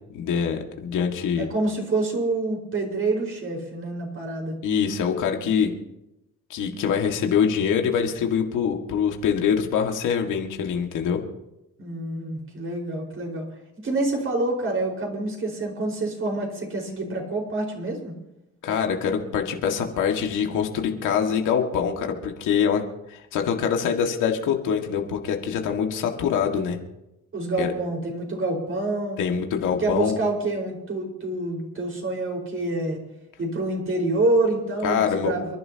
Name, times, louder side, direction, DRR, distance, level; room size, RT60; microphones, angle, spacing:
voice 1, 0.1-1.5 4.6-5.7 6.5-11.2 18.6-22.8 23.1-26.8 27.6-27.7 29.2-30.1 34.8-35.3, left 7 dB, 90° left, 2 dB, 2.0 m, -24 dB
voice 2, 1.4-4.5 11.8-13.4 13.8-18.1 27.3-29.2 29.8-33.0 33.4-35.6, right 2 dB, 45° right, 1 dB, 5.0 m, -27 dB
29.0 x 11.0 x 2.9 m, 0.91 s
cardioid pair, 90°, 30 cm